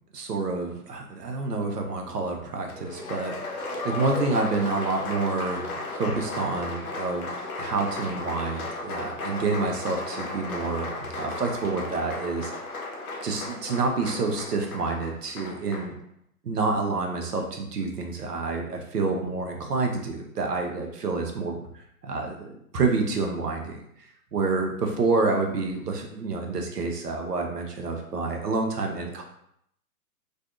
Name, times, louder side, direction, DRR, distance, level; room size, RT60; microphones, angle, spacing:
voice 1, 0.1-12.8 13.2-16.0 16.4-23.8 24.3-29.2, right 3 dB, 85° right, 2 dB, 0.7 m, -28 dB
Applause, 2.7-15.9, left 2 dB, 65° left, 0.7 m, -35 dB
2.5 x 2.3 x 2.3 m, 0.72 s
figure-of-eight pair, 125°, 46 cm